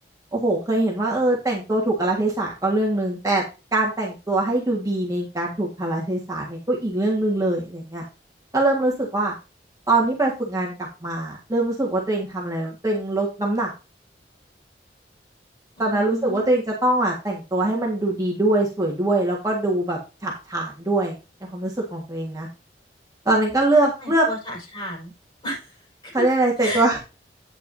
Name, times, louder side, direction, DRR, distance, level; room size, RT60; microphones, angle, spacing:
voice 1, 0.3-3.4 3.7-8.0 8.5-9.3 9.9-10.7 11.0-13.7 15.8-21.1 21.5-22.5 23.2-24.3 26.1-27.0, right 2 dB, 20° right, -2 dB, 1.6 m, -23 dB
voice 2, 15.8-16.6 23.4-25.1 25.4-26.3 26.6-26.9, left 1 dB, 25° left, -2 dB, 5.3 m, -33 dB
9.0 x 9.0 x 2.7 m, 0.30 s
head